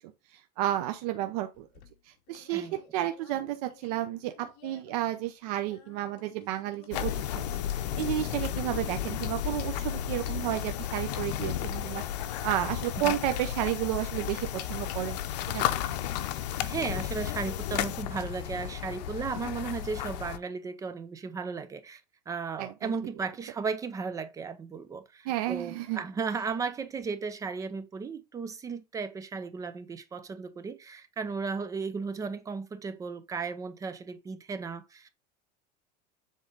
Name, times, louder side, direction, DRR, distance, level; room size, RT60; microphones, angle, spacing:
voice 1, 0.3-1.7 2.1-7.5 8.0-12.0 12.4-15.2 15.5-15.7 22.6-22.9 25.3-26.0, right 13 dB, 70° right, 0.7 m, -32 dB
sound 1, 1.5-5.0 5.2-8.9 9.2-9.3 9.6-9.9 10.3-10.6 11.1-12.1 12.8-13.2 13.4-13.5 14.3-15.0 15.6-16.9 17.2-17.6, left 9 dB, 50° left, 1.7 m, -51 dB
sound 2, 6.9-20.4, left 11 dB, 90° left, 0.7 m, -33 dB
voice 2, 16.6-22.0 22.3-35.1, right 5 dB, 15° right, 0.5 m, -35 dB
7.3 x 3.8 x 3.8 m
supercardioid pair, 150°, 21 cm